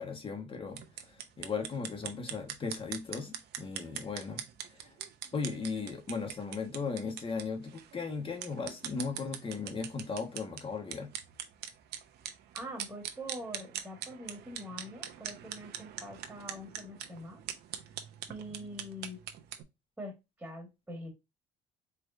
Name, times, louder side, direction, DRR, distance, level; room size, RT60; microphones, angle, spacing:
voice 1, 0.0-4.4 4.8-4.9 5.3-11.1, left 5 dB, 30° left, 1.4 m, -37 dB
sound 1, 0.7-19.6, right 10 dB, 75° right, 0.8 m, -43 dB
voice 2, 12.5-17.4 17.8-17.9 18.3-19.2 20.0-21.1, equal, 5° right, 1.6 m, -44 dB
4.5 x 3.3 x 2.6 m
cardioid pair, 110°, 17 cm